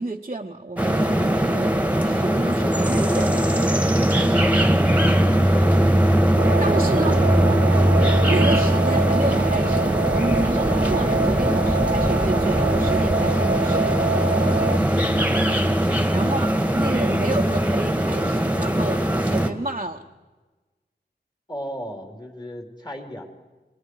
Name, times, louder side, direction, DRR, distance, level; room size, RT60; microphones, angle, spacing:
voice 1, 0.0-3.4 6.6-7.2 8.2-14.0 16.1-20.0, right 2 dB, 35° right, 0 dB, 1.0 m, -30 dB
sound 1, 0.8-19.5, right 1 dB, 10° right, 1.9 m, -20 dB
voice 2, 4.4-5.6 15.2-15.5 21.5-23.2, equal, 20° left, 2 dB, 3.9 m, -36 dB
sound 2, 6.4-14.8, right 3 dB, 65° right, 0.7 m, -26 dB
29.5 x 21.5 x 4.9 m, 1.2 s
wide cardioid pair, 50°, 19 cm